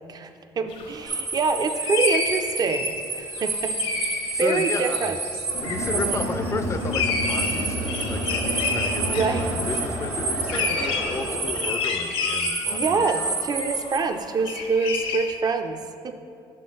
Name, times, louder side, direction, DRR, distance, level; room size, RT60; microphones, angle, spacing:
voice 1, 0.1-5.2 5.9-6.2 9.1-9.4 10.6-10.7 12.7-16.1, right 4 dB, 40° right, 8 dB, 0.5 m, -26 dB
sound 1, 0.7-1.3 1.6-9.9 10.4-15.3, left 4 dB, 80° left, 0.8 m, -30 dB
sound 2, 1.1-14.0, right 3 dB, 60° right, 1.1 m, -31 dB
voice 2, 4.3-5.2 5.6-13.4, left 4 dB, 30° left, 9 dB, 0.4 m, -33 dB
Crowd, 5.4-11.8, right 1 dB, 85° right, 1.5 m, -30 dB
5.8 x 3.8 x 5.4 m, 2.6 s
supercardioid pair, 75°, 10 cm